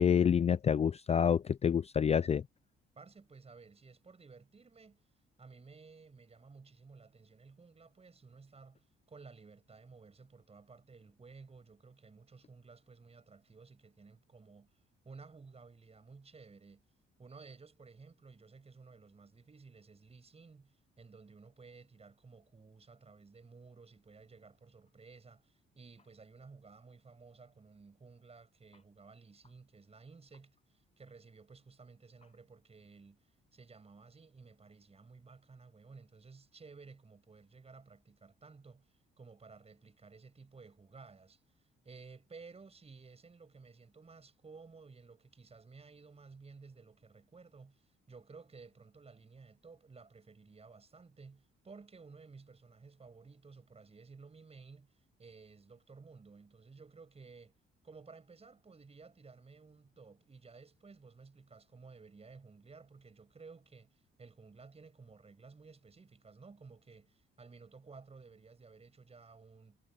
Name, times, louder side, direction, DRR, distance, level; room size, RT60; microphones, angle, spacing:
voice 1, 0.0-2.4, left 7 dB, 30° left, 0.4 m, -27 dB
voice 2, 3.0-5.0 5.4-14.7 15.0-16.8 17.2-57.5 57.8-69.8, right 4 dB, 30° right, 7.7 m, -55 dB
cardioid pair, 90°, 20 cm